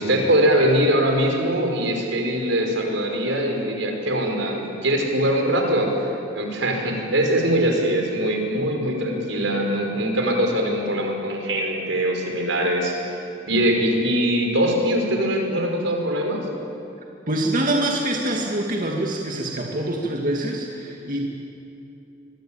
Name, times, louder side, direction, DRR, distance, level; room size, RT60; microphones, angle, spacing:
voice 1, 0.0-6.1 6.3-13.2 13.5-16.4, equal, 80° right, 2 dB, 5.1 m, -22 dB
voice 2, 17.3-21.3, right 1 dB, 45° right, 0 dB, 2.3 m, -25 dB
25.0 x 22.5 x 9.0 m, 2.9 s
head